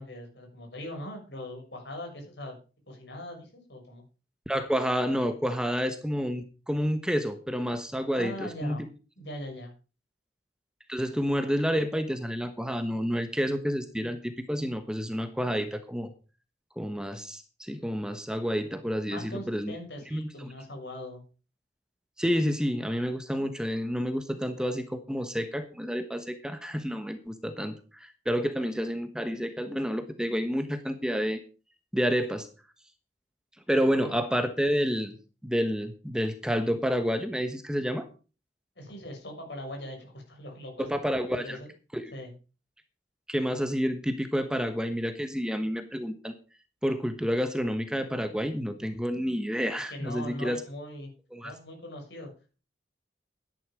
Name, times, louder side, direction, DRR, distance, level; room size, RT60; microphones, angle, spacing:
voice 1, 0.0-2.6 2.9-4.0 8.1-8.8 9.2-9.7 19.1-21.2 34.0-34.1 38.8-40.9 41.4-41.7 42.1-42.3 49.9-51.1 51.4-52.3, left 1 dB, 75° left, 2 dB, 6.6 m, -40 dB
voice 2, 4.5-8.9 10.9-16.1 16.8-19.7 20.1-20.5 22.2-31.4 31.9-32.5 33.7-35.2 35.4-38.1 40.8-41.6 41.9-42.1 43.3-46.3 46.8-50.6 51.3-51.5, equal, 5° right, 9 dB, 1.2 m, -29 dB
12.5 x 10.5 x 5.2 m, 0.34 s
head